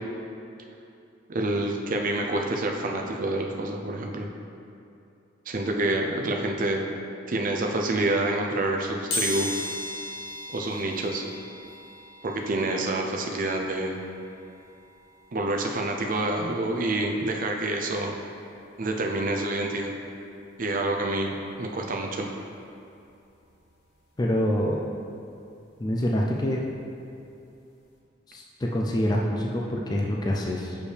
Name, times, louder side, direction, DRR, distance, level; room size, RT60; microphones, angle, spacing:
voice 1, 1.3-4.3 5.5-6.8 7.3-9.7 10.5-11.2 12.2-14.0 15.3-18.2 18.8-19.9 20.6-22.3, right 2 dB, 45° right, 1 dB, 0.5 m, -27 dB
sound 1, 9.1-19.8 20.2-20.3 21.5-21.6 21.9-24.0 24.3-27.0 27.3-27.5 27.8-27.9, left 1 dB, 60° left, 1.0 m, -39 dB
voice 2, 24.2-24.8 25.8-26.6 28.3-30.8, equal, 20° left, -1 dB, 0.4 m, -26 dB
6.5 x 5.3 x 3.3 m, 2.6 s
head